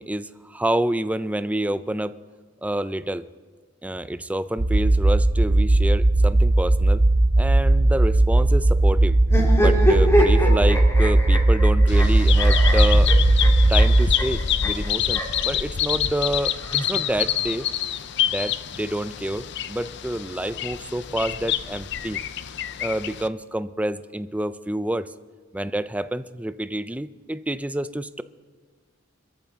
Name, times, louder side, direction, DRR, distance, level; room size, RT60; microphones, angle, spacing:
voice 1, 0.0-2.1 2.6-3.3 3.8-7.0 7.4-9.2 9.5-13.1 13.7-16.5 16.9-17.7 18.3-22.2 22.8-25.1 25.5-28.2, right 1 dB, 5° right, 13 dB, 0.4 m, -28 dB
sound 1, 4.6-14.1, right 2 dB, 55° right, 0.8 m, -17 dB
sound 2, 9.2-15.4 16.4-17.5, equal, 15° left, 2.2 m, -25 dB
Bird vocalization bird call bird song, 11.9-23.3, left 9 dB, 60° left, 0.6 m, -27 dB
26.5 x 14.0 x 3.6 m, 1.5 s
head